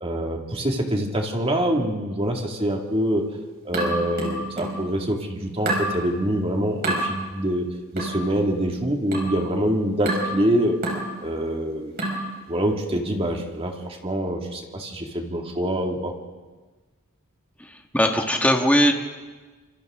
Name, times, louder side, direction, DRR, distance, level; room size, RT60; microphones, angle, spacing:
voice 1, 0.0-3.3 3.6-7.7 7.9-10.8 11.2-11.9 12.5-16.1, equal, 25° right, 2 dB, 2.2 m, -25 dB
sound 1, 3.7-4.9 5.7-5.9 6.8-7.1 8.0-8.2 9.1-9.4 10.1-10.4 10.8-11.1 12.0-12.3, right 1 dB, 45° right, 5.5 m, -27 dB
voice 2, 17.6-18.9, equal, 5° left, 2 dB, 1.6 m, -20 dB
26.5 x 26.0 x 3.7 m, 1.3 s
head